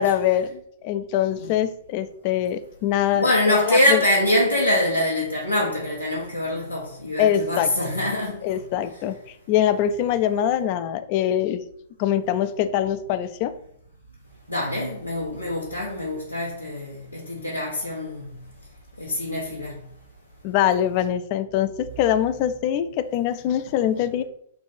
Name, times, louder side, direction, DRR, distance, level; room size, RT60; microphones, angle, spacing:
voice 1, 0.0-4.0 7.2-7.7 8.4-11.6 12.0-13.5 20.4-24.2, left 10 dB, 40° left, 0.3 m, -23 dB
voice 2, 3.1-8.6 14.5-18.3 19.0-19.8, left 1 dB, 90° left, 0.8 m, -24 dB
3.3 x 2.4 x 4.0 m
figure-of-eight pair, 105°, 0 cm